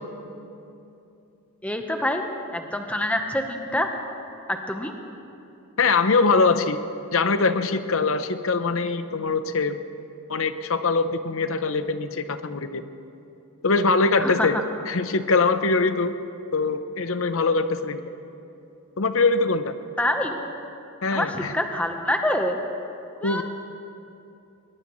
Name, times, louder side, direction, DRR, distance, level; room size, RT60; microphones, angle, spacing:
voice 1, 1.6-2.2 2.5-3.9 4.5-4.9 14.2-14.5 20.0-20.4 21.1-22.6 23.2-23.4, left 1 dB, 5° left, 4 dB, 1.0 m, -26 dB
voice 2, 5.8-6.8 7.1-9.8 10.3-12.8 13.6-14.6 14.9-16.2 16.5-18.0 19.0-19.8 21.0-21.5 23.2-23.4, left 4 dB, 65° left, 10 dB, 0.8 m, -22 dB
22.0 x 21.0 x 3.2 m, 2.8 s
head